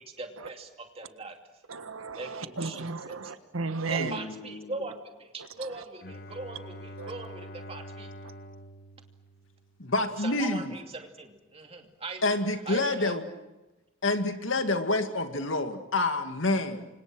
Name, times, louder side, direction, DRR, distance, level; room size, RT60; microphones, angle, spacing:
voice 1, 0.0-1.4 2.2-3.2 3.9-8.1 10.2-12.2 12.7-13.1, right 3 dB, 30° right, 2.6 m, -40 dB
voice 2, 1.7-4.2 5.6-5.7 7.0-7.1, right 4 dB, 85° right, 1.7 m, -34 dB
voice 3, 4.0-4.7 9.8-10.8 12.2-13.3 14.0-16.9, left 2 dB, 70° left, 2.1 m, -28 dB
Bowed string instrument, 6.0-9.9, equal, 50° left, 1.2 m, -45 dB
29.5 x 25.5 x 6.2 m
head